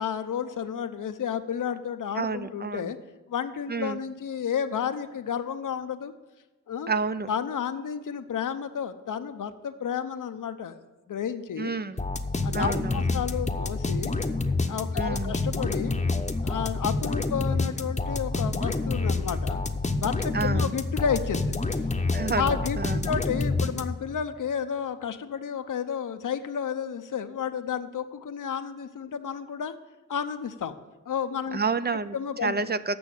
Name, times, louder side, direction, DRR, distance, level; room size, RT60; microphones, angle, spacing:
voice 1, 0.0-3.0 3.3-6.1 6.7-6.9 7.3-10.8 11.1-11.7 12.4-14.2 14.7-16.0 16.4-19.6 20.0-21.5 22.4-29.7 30.1-30.8 31.1-31.6 32.1-32.6, left 7 dB, 70° left, 10 dB, 0.8 m, -31 dB
voice 2, 2.2-2.9 3.7-4.0 6.9-7.3 11.6-12.0 12.5-13.1 15.0-15.3 20.3-20.7 22.1-23.1 31.5-32.1 32.4-33.0, right 4 dB, 30° right, 13 dB, 0.5 m, -29 dB
sound 1, 12.0-24.2, left 3 dB, 20° left, 0.8 m, -28 dB
8.6 x 6.1 x 7.7 m, 1.1 s
cardioid pair, 60°, 32 cm